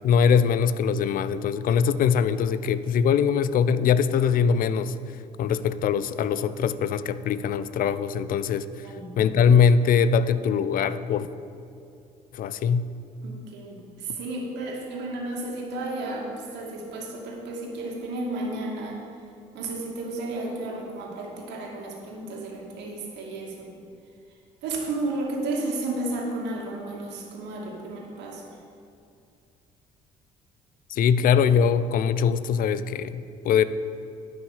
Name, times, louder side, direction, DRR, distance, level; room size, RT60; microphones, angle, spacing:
voice 1, 0.0-4.9 5.4-8.9 9.2-11.3 12.3-12.8 30.9-33.6, left 7 dB, 45° left, 14 dB, 0.5 m, -22 dB
voice 2, 13.2-19.0 19.5-23.7 24.6-28.4, right 2 dB, 60° right, -1 dB, 2.4 m, -33 dB
11.0 x 6.6 x 7.3 m, 2.5 s
figure-of-eight pair, 50°, 20 cm